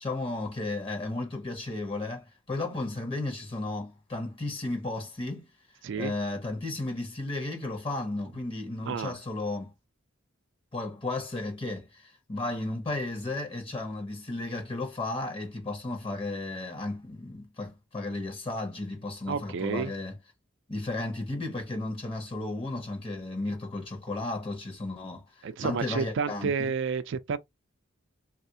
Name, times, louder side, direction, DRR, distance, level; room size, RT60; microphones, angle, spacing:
voice 1, 0.0-5.5 6.0-9.7 10.7-20.1 20.7-26.7, left 2 dB, 25° left, 0.8 m, -34 dB
voice 2, 8.8-9.2 19.3-19.9 25.4-27.4, right 5 dB, 65° right, 0.4 m, -30 dB
3.4 x 2.4 x 2.7 m
head